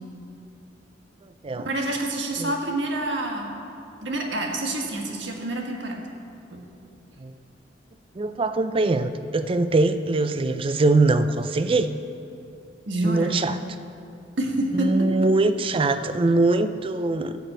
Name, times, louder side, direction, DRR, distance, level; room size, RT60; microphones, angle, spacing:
voice 1, 1.6-3.5 4.0-6.0 6.5-6.6 12.9-13.4 14.4-14.9, right 1 dB, 70° right, 1 dB, 1.4 m, -27 dB
voice 2, 8.2-11.9 13.0-13.6 14.7-17.4, right 2 dB, 30° right, 10 dB, 0.4 m, -22 dB
12.5 x 5.1 x 7.6 m, 2.6 s
head